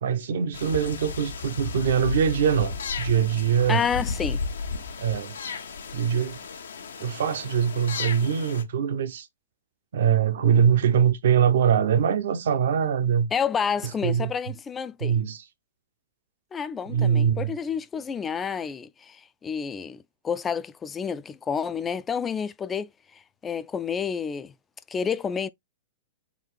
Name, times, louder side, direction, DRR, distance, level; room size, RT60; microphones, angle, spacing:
voice 1, 0.0-3.8 5.0-5.4 5.9-6.4 7.0-9.3 9.9-13.3 14.0-14.3 15.0-15.4 16.9-17.5, right 8 dB, 70° right, 0.8 m, -23 dB
sound 1, 0.5-8.6, left 4 dB, 80° left, 0.9 m, -34 dB
voice 2, 3.7-4.4 13.3-15.2 16.5-24.5 24.9-25.5, left 6 dB, 20° left, 0.4 m, -29 dB
4.1 x 2.5 x 4.5 m
hypercardioid pair, 120°, 0 cm